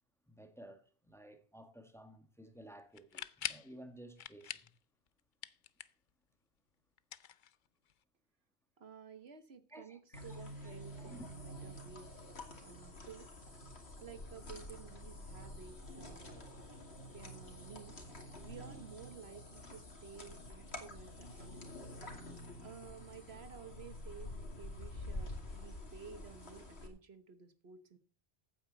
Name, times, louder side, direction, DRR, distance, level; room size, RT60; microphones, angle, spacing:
voice 1, 0.3-4.7 9.7-10.4 11.0-11.3, right 1 dB, ahead, 1.7 m, -54 dB
sound 1, 2.9-3.7 4.2-4.8 5.1-6.1 7.0-7.9, left 9 dB, 55° left, 0.7 m, -44 dB
voice 2, 8.8-12.2 12.6-13.3 14.0-16.4 17.1-18.0 18.4-21.8 22.6-28.0, right 6 dB, 70° right, 1.5 m, -53 dB
sound 2, 10.1-26.9, left 1 dB, 75° left, 2.8 m, -48 dB
15.0 x 8.9 x 4.0 m
omnidirectional pair, 1.1 m